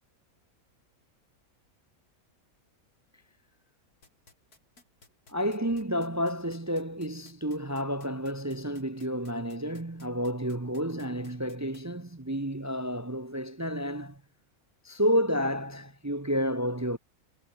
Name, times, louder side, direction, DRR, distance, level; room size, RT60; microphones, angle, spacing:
sound 1, 4.0-11.8, left 3 dB, 80° left, 4.6 m, -57 dB
voice 1, 5.3-14.2 14.8-17.0, equal, 20° right, 0.5 m, -30 dB
omnidirectional pair, 1.6 m